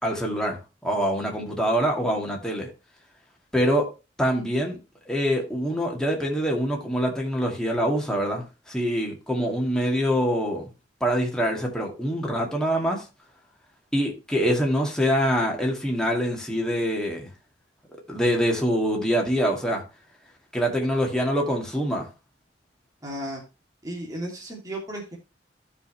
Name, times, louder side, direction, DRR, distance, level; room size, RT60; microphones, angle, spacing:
voice 1, 0.0-2.7 3.5-3.9 4.2-4.8 5.1-10.7 11.0-13.0 13.9-17.3 18.1-19.8 20.5-22.1, equal, 5° left, 2.2 m, -25 dB
voice 2, 23.0-23.4 23.8-25.2, right 1 dB, 20° right, 2.6 m, -34 dB
13.5 x 5.2 x 3.2 m
head